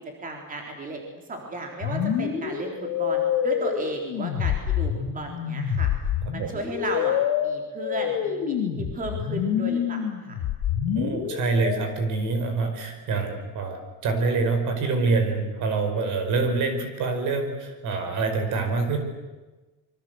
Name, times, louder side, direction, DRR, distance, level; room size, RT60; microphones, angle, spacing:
voice 1, 0.2-5.9 6.3-10.4, right 1 dB, 20° right, 2 dB, 3.7 m, -34 dB
sound 1, 1.8-11.8, left 8 dB, 80° left, 3.4 m, -27 dB
voice 2, 11.0-19.0, right 3 dB, 55° right, 7 dB, 5.1 m, -26 dB
26.5 x 24.5 x 7.9 m, 1.2 s
cardioid pair, 175°, 36 cm